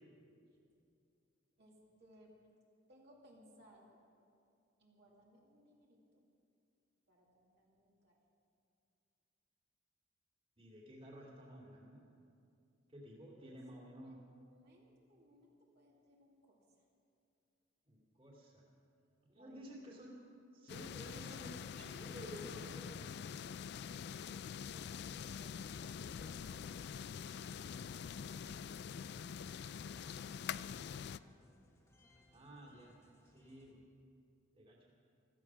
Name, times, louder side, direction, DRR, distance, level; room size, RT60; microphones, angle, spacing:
voice 1, 1.6-2.4 2.9-4.0 4.8-6.2 7.1-8.2 13.4-13.5 13.9-14.2 14.5-16.9 19.3-19.9 24.2-29.6 29.9-31.0, equal, 55° right, -3 dB, 2.4 m, -65 dB
voice 2, 10.6-12.0 12.9-14.2 17.9-18.6 19.2-20.1 20.5-23.1 32.3-33.0 33.2-33.8 34.5-34.8, equal, 30° right, -3 dB, 2.5 m, -53 dB
sound 1, 20.7-31.2, left 7 dB, 55° left, 0.3 m, -45 dB
sound 2, 26.3-33.7, left 1 dB, 15° left, 1.6 m, -70 dB
15.5 x 13.5 x 6.0 m, 2.5 s
head